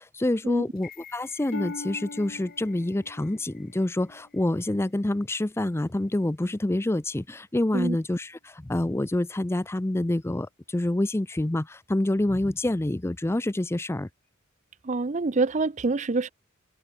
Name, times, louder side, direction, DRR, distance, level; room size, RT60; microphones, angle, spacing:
voice 1, 0.0-14.1, left 1 dB, 10° left, 0.5 m, -27 dB
sound 1, 0.8-4.9 5.3-5.4, left 10 dB, 45° left, 4.1 m, -52 dB
Harp, 1.5-5.3 5.8-6.2 6.8-7.0, left 3 dB, 70° left, 1.1 m, -41 dB
voice 2, 14.8-16.3, right 3 dB, 35° right, 0.6 m, -26 dB
head